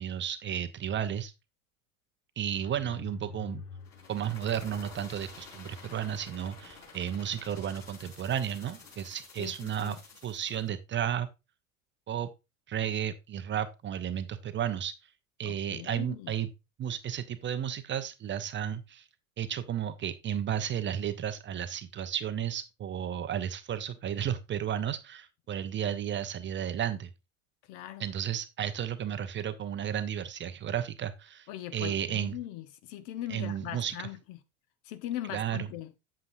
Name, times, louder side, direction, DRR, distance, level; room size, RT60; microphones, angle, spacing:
voice 1, 0.0-1.3 2.4-3.6 4.1-10.0 10.2-11.3 12.1-12.3 12.7-15.1 15.4-16.5 16.8-19.1 19.4-27.1 28.0-32.4 33.3-34.1 35.3-35.7, right 9 dB, 25° right, 0.7 m, -33 dB
Mechanisms, 2.5-9.3, left 6 dB, 90° left, 0.7 m, -51 dB
sound 1, 3.8-10.7, left 4 dB, 35° left, 3.8 m, -50 dB
voice 2, 9.4-10.0 15.4-16.3 27.7-28.1 31.5-34.4 34.8-35.9, left 13 dB, 55° left, 1.0 m, -40 dB
8.0 x 7.5 x 2.6 m
hypercardioid pair, 80°, 43 cm